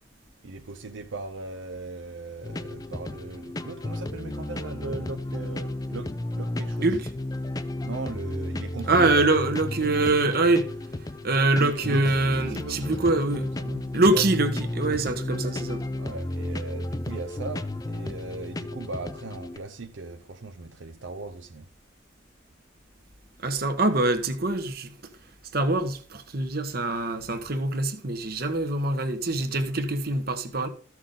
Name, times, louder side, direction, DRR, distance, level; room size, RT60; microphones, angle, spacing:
voice 1, 0.4-7.0 7.8-9.3 11.6-13.2 13.6-13.9 14.1-14.2 16.0-21.7, right 3 dB, 75° right, 0.7 m, -38 dB
sound 1, 2.4-19.6, left 1 dB, 20° left, 0.5 m, -33 dB
voice 2, 8.9-10.7 11.2-13.5 13.9-15.8 23.4-25.1 25.5-30.7, right 2 dB, 50° right, 1.3 m, -24 dB
14.5 x 6.0 x 3.8 m
head